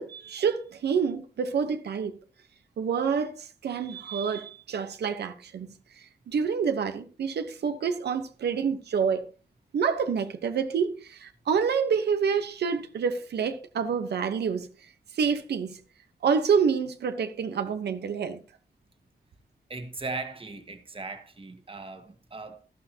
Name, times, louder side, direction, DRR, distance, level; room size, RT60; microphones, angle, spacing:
voice 1, 0.0-2.1 2.8-9.2 9.7-14.7 15.1-15.8 16.2-18.4, right 6 dB, 90° right, 1.0 m, -28 dB
voice 2, 19.7-22.6, right 3 dB, 35° right, 1.7 m, -38 dB
12.5 x 12.5 x 2.9 m
cardioid pair, 90°, 17 cm